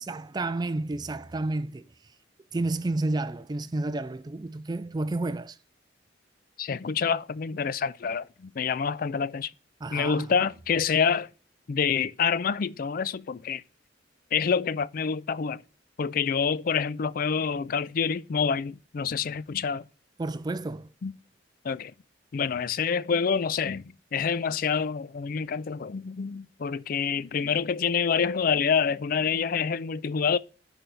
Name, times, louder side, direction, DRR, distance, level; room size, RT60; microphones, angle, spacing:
voice 1, 0.0-1.9 2.5-5.6 9.8-10.3 20.2-20.9, right 2 dB, 20° right, 0.3 m, -30 dB
voice 2, 6.6-9.5 9.9-11.3 11.7-13.6 14.3-15.6 16.0-19.8 21.0-21.1 21.6-21.9 22.3-30.4, left 6 dB, 50° left, 0.4 m, -27 dB
11.0 x 4.0 x 4.5 m
head